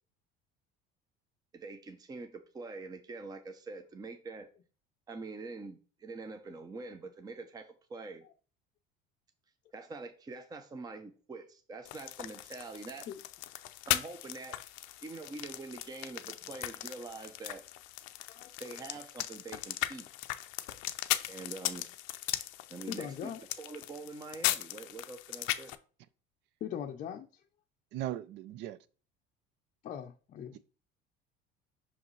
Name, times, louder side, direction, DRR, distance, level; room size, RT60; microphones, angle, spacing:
voice 1, 1.5-4.5 5.1-8.2 9.7-13.1 13.8-14.6 15.0-17.7 18.6-20.1 21.3-21.9 22.7-25.7, right 3 dB, 20° right, 0.6 m, -45 dB
sound 1, 11.8-25.7, left 16 dB, 85° left, 0.5 m, -38 dB
voice 2, 22.9-23.4 26.6-27.4 29.8-30.6, left 9 dB, 40° left, 0.6 m, -40 dB
voice 3, 27.9-28.8 30.5-30.6, right 13 dB, 60° right, 0.5 m, -38 dB
5.9 x 5.0 x 3.2 m
cardioid pair, 120°, 20 cm